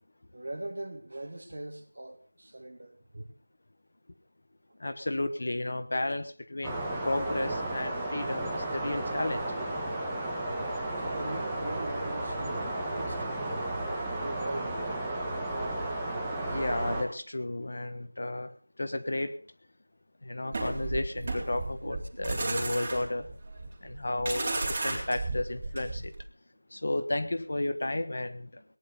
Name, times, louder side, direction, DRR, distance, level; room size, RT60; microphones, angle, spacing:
voice 1, 0.3-3.3 11.0-13.3 13.8-14.8 15.5-15.7 16.1-16.2 21.8-22.4, right 1 dB, 50° right, 7 dB, 2.7 m, -41 dB
voice 2, 4.8-9.4 16.4-18.5 18.8-19.4 20.2-23.3 23.8-26.1 26.7-28.6, left 2 dB, 40° left, 10 dB, 1.4 m, -33 dB
sound 1, 6.6-17.0, right 1 dB, 5° right, 1.3 m, -33 dB
sound 2, 20.5-26.2, right 2 dB, 20° right, 3.8 m, -33 dB
19.0 x 10.5 x 5.5 m, 0.39 s
figure-of-eight pair, 175°, 0 cm